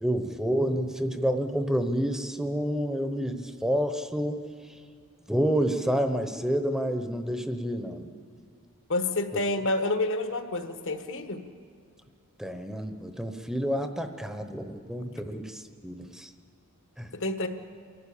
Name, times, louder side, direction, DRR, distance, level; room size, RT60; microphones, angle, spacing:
voice 1, 0.0-4.4 5.3-8.1 12.4-16.3 17.0-17.1, equal, ahead, 7 dB, 0.9 m, -29 dB
voice 2, 8.9-11.4 17.1-17.5, left 2 dB, 60° left, 7 dB, 1.4 m, -28 dB
29.0 x 12.0 x 8.6 m, 2.3 s
head